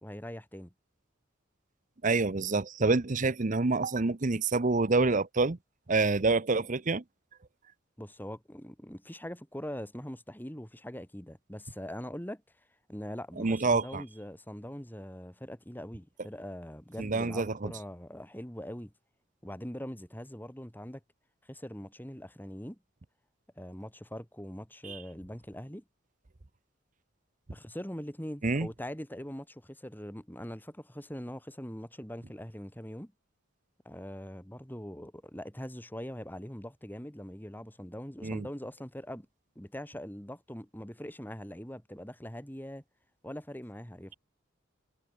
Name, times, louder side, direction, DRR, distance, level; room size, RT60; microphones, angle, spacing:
voice 1, 0.0-0.7 8.0-12.4 12.9-18.9 19.4-21.0 21.5-22.8 23.6-25.8 27.5-33.1 33.8-39.3 39.5-42.8 43.2-44.2, equal, 10° left, 3.4 m, -42 dB
voice 2, 2.0-5.6 5.9-7.0 13.4-14.0 17.0-17.7 24.8-25.0 28.4-28.7 38.2-38.5, right 3 dB, 40° right, 0.8 m, -27 dB
head